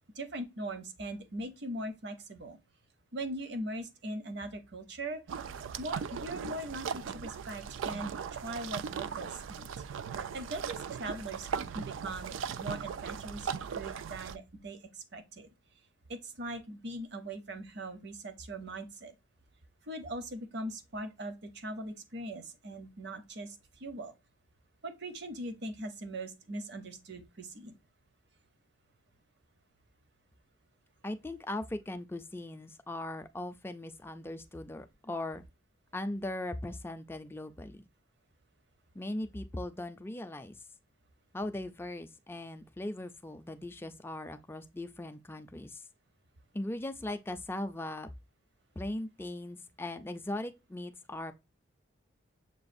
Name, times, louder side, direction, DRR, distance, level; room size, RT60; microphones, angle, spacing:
voice 1, 0.2-2.6 3.1-5.2 5.8-8.1 8.4-9.7 10.3-13.5 13.7-15.5 16.1-19.1 19.9-24.1 24.8-27.7, right 1 dB, 55° right, 0.8 m, -40 dB
sound 1, 5.3-14.4, right 7 dB, 75° right, 0.3 m, -38 dB
voice 2, 31.0-35.4 35.9-37.8 38.9-40.6 41.3-45.8 46.5-48.1 48.8-51.3, left 1 dB, 10° left, 0.3 m, -39 dB
6.8 x 2.4 x 2.5 m
head